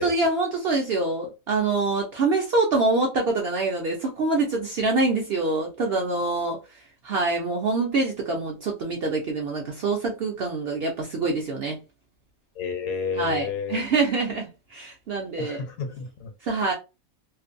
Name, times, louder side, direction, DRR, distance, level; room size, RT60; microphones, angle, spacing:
voice 1, 0.0-11.8 13.1-15.6 16.4-16.7, right 3 dB, 65° right, 0.6 m, -25 dB
voice 2, 12.6-13.8 15.4-16.3, left 5 dB, 75° left, 1.0 m, -30 dB
2.5 x 2.1 x 2.5 m
omnidirectional pair, 1.5 m